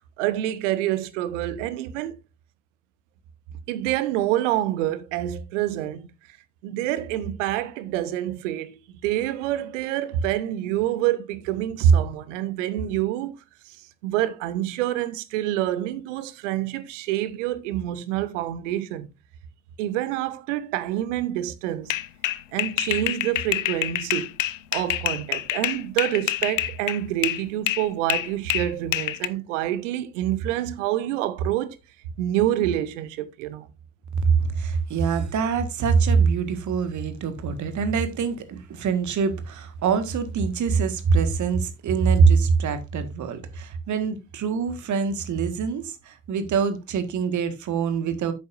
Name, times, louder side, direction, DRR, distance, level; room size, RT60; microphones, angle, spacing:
voice 1, 0.2-2.1 3.7-6.1 6.6-13.3 13.7-13.8 14.0-19.1 19.8-21.9 22.5-24.3 24.7-31.8 32.2-33.7, right 12 dB, 70° right, 1.0 m, -26 dB
sound 1, 21.9-27.4 27.7-29.3, left 14 dB, 75° left, 0.6 m, -27 dB
voice 2, 34.2-48.3, right 5 dB, 50° right, 1.8 m, -24 dB
10.5 x 8.5 x 2.6 m
figure-of-eight pair, 50°, 39 cm